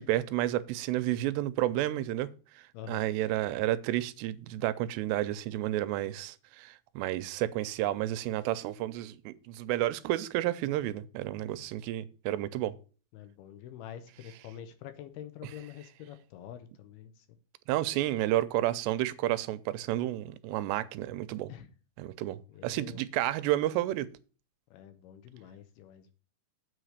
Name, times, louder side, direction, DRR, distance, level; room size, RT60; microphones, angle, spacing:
voice 1, 0.0-12.8 17.7-21.5 22.0-24.1, right 14 dB, 85° right, 2.7 m, -31 dB
voice 2, 2.7-3.1 13.1-17.3 21.5-21.7 22.5-23.0 24.7-26.1, left 10 dB, 75° left, 2.6 m, -46 dB
7.8 x 4.9 x 6.4 m
omnidirectional pair, 4.9 m